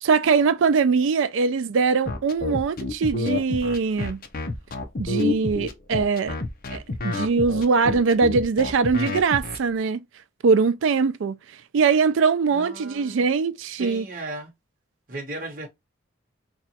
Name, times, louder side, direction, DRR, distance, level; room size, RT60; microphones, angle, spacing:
voice 1, 0.0-4.2 5.0-6.3 6.7-10.0 10.4-11.4 11.7-14.0, right 5 dB, 75° right, 0.4 m, -22 dB
sound 1, 2.0-9.6, left 3 dB, 45° left, 0.6 m, -28 dB
voice 2, 12.5-13.2 13.8-14.5 15.1-15.7, right 2 dB, 45° right, 1.0 m, -35 dB
2.9 x 2.3 x 4.1 m
head